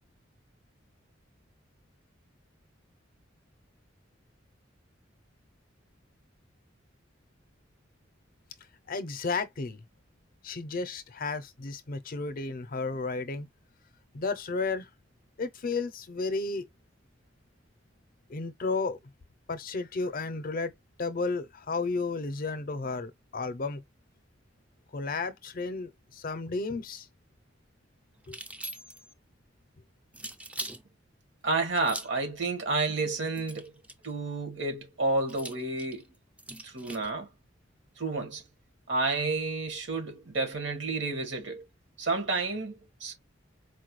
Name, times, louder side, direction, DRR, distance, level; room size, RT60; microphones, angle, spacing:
voice 1, 8.9-9.8 10.4-13.5 14.1-14.9 15.4-16.7 18.3-19.0 19.5-20.7 21.0-23.8 24.9-27.1 28.3-28.4, left 3 dB, 50° left, 0.6 m, -33 dB
sound 1, 28.2-29.1 30.1-30.8 31.8-32.3 33.3-34.1 35.3-37.1, right 1 dB, 5° right, 0.4 m, -41 dB
voice 2, 31.4-33.7 34.0-36.0 36.6-37.3 38.0-38.4 38.9-41.6 42.0-43.1, right 3 dB, 70° right, 1.5 m, -30 dB
4.4 x 2.2 x 3.0 m
head